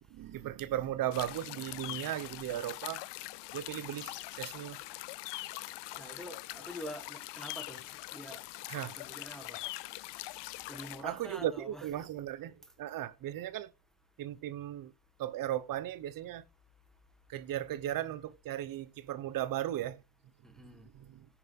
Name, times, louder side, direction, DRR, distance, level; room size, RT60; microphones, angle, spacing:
voice 1, 0.1-3.0 3.5-4.8 8.7-9.0 11.0-13.7 14.2-14.9 15.2-16.4 17.3-20.0 20.6-20.7 20.9-21.3, right 12 dB, 50° right, 0.9 m, -36 dB
sound 1, 1.1-11.0, left 18 dB, 70° left, 0.7 m, -43 dB
voice 2, 5.9-8.4 9.0-9.6 10.7-11.9 20.5-20.9, right 1 dB, ahead, 1.4 m, -46 dB
9.9 x 5.8 x 6.0 m
cardioid pair, 165°, 44 cm